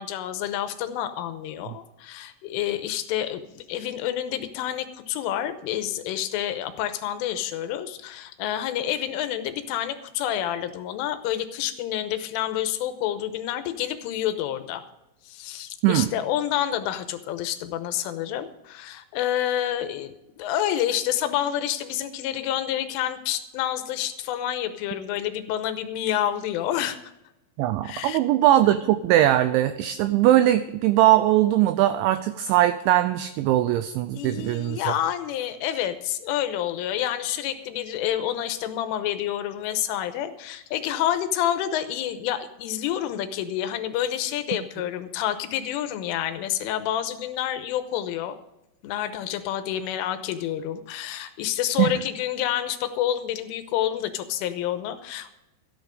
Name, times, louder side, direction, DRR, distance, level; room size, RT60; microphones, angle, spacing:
voice 1, 0.0-14.8 15.3-27.0 27.8-28.2 34.1-48.3 48.8-55.3, left 11 dB, 80° left, 9 dB, 3.2 m, -28 dB
voice 2, 27.6-34.8 51.8-51.9, right 13 dB, 85° right, 11 dB, 2.7 m, -20 dB
13.5 x 10.5 x 5.2 m, 0.92 s
omnidirectional pair, 6.0 m